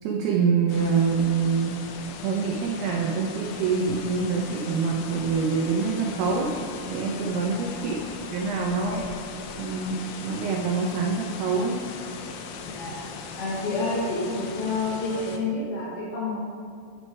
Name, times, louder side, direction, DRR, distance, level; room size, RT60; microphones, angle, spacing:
voice 1, 0.0-1.8 2.2-6.5 6.9-8.0 8.3-9.0 9.6-11.8, right 5 dB, 85° right, -1 dB, 2.3 m, -25 dB
sound 1, 0.7-15.4, left 5 dB, 85° left, 3.1 m, -39 dB
voice 2, 7.3-7.8 8.9-9.1 12.7-13.0 13.4-16.4, left 3 dB, 65° left, -6 dB, 2.4 m, -29 dB
11.0 x 4.2 x 4.6 m, 2.3 s
omnidirectional pair, 5.5 m